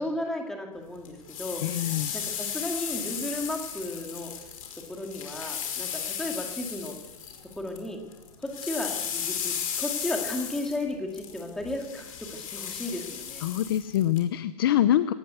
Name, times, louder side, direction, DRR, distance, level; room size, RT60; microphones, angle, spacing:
voice 1, 0.0-4.3 4.9-6.9 7.6-8.0 8.4-13.4, left 1 dB, ahead, 1 dB, 2.3 m, -34 dB
sound 1, 1.0-7.9 8.1-14.2, left 8 dB, 60° left, 5.5 m, -35 dB
voice 2, 1.6-2.1 13.4-15.1, left 12 dB, 35° left, 12 dB, 0.7 m, -24 dB
22.0 x 18.0 x 8.2 m, 1.2 s
hypercardioid pair, 170°, 20 cm